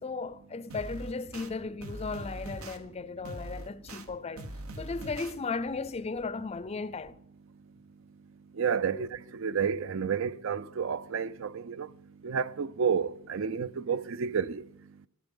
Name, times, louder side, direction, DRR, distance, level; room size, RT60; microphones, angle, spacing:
voice 1, 0.0-4.5 4.8-7.1 8.9-9.0, left 4 dB, 30° left, 0.4 m, -36 dB
sound 1, 0.7-1.5 1.8-2.8 3.2-4.0 4.4-5.3, right 1 dB, 85° right, 1.2 m, -41 dB
voice 2, 8.6-11.9 12.2-14.6, right 6 dB, 65° right, 0.5 m, -30 dB
14.0 x 12.0 x 5.4 m
head